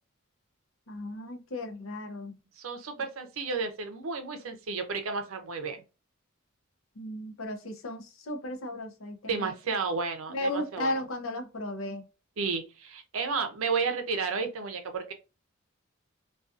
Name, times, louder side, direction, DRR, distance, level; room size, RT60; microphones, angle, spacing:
voice 1, 0.9-2.4 7.0-9.5 10.3-12.0, left 1 dB, 70° left, 0.6 m, -35 dB
voice 2, 2.6-5.8 9.3-10.9 12.4-15.1, right 4 dB, 75° right, 0.5 m, -32 dB
2.5 x 2.3 x 2.4 m
head